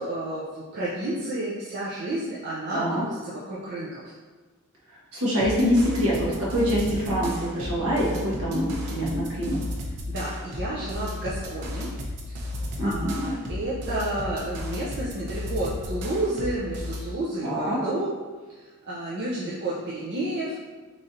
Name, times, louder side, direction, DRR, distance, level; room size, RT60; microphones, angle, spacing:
voice 1, 0.0-4.1 10.1-11.9 12.3-12.5 12.8-18.1 18.9-20.6, right 1 dB, 50° right, -7 dB, 0.5 m, -31 dB
voice 2, 2.7-3.0 5.1-9.6 12.8-13.3 17.4-17.8, equal, 65° right, -7 dB, 1.2 m, -25 dB
sound 1, 5.4-17.1, left 1 dB, 90° right, 0.6 m, -34 dB
4.0 x 3.1 x 2.5 m, 1.4 s
head